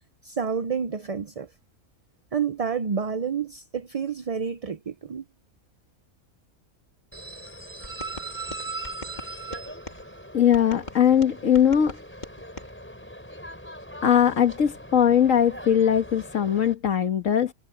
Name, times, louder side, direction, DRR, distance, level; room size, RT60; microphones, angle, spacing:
voice 1, 0.2-1.5 2.3-5.2, right 6 dB, 45° right, 0.4 m, -29 dB
sound 1, 7.1-16.7, right 2 dB, 10° left, 4.6 m, -40 dB
sound 2, 7.8-10.0 10.5-12.7, left 2 dB, 30° left, 2.7 m, -42 dB
voice 2, 10.3-12.0 14.0-17.5, left 9 dB, 60° left, 1.8 m, -20 dB
omnidirectional pair, 1.5 m